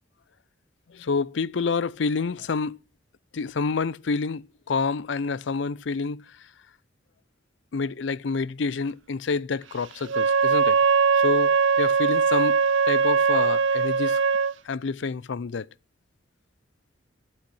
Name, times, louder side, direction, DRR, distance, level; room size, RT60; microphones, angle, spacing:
voice 1, 0.9-2.8 3.3-6.2 7.7-10.8 11.1-12.6 12.9-14.2 14.7-15.7, left 4 dB, 70° left, 0.5 m, -28 dB
Wind instrument woodwind instrument, 10.1-14.5, right 5 dB, 85° right, 0.7 m, -21 dB
11.5 x 5.7 x 7.7 m
head